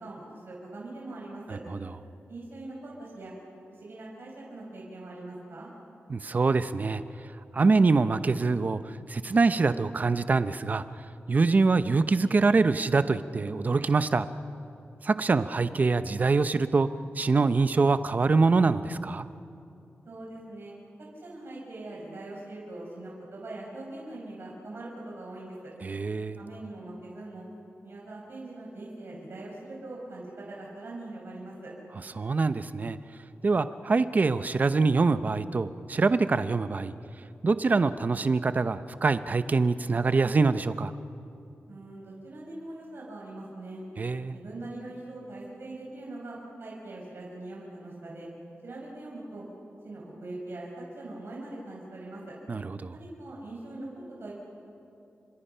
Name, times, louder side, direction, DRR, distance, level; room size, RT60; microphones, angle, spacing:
voice 1, 0.0-1.6 2.3-3.3 3.8-5.7 20.1-20.7 21.2-25.5 26.4-27.5 27.8-31.7 41.7-43.8 44.3-48.3 48.6-49.5 49.8-50.7 51.0-52.3 52.9-53.9 54.2-54.4, right 2 dB, 60° right, -4 dB, 5.7 m, -42 dB
voice 2, 1.5-1.8 6.1-7.0 7.5-8.8 9.1-10.8 11.3-14.3 15.0-16.9 17.2-19.3 25.8-26.4 32.2-33.0 33.4-36.9 37.4-40.9 44.0-44.4 52.5-52.9, right 4 dB, 40° right, 12 dB, 0.8 m, -24 dB
30.0 x 26.0 x 5.6 m, 2.7 s
wide cardioid pair, 140°, 4 cm